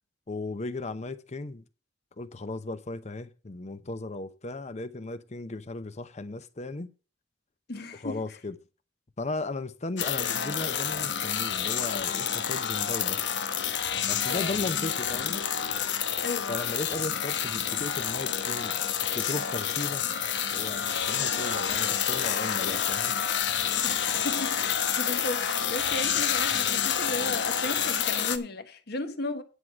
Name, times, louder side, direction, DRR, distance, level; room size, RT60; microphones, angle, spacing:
voice 1, 0.3-1.6 2.2-6.9 8.0-8.6 9.2-13.2 14.1-15.4 16.5-18.8 19.1-20.1 20.5-23.1, left 2 dB, 40° left, 0.7 m, -36 dB
voice 2, 7.7-8.2 14.3-14.6 16.2-16.6 23.8-29.4, left 2 dB, 65° left, 1.3 m, -35 dB
sound 1, 10.0-28.4, left 8 dB, 90° left, 1.0 m, -28 dB
10.0 x 4.8 x 7.2 m
head